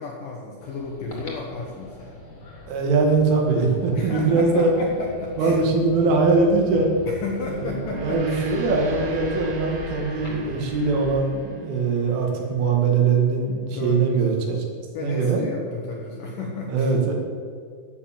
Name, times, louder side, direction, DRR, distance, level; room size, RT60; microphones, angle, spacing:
voice 1, 0.0-2.2 4.0-5.6 7.1-8.5 13.7-14.2 14.9-16.9, left 3 dB, 65° left, -1 dB, 2.2 m, -33 dB
sound 1, 0.6-11.2, left 2 dB, 35° left, 2.4 m, -40 dB
voice 2, 2.7-4.7 5.4-6.9 7.5-14.6 15.0-15.4 16.7-17.1, right 4 dB, 85° right, 1 dB, 4.4 m, -21 dB
Gong, 7.7-12.3, right 4 dB, 55° right, 2.7 m, -41 dB
12.5 x 8.6 x 7.5 m, 2.1 s
omnidirectional pair, 5.5 m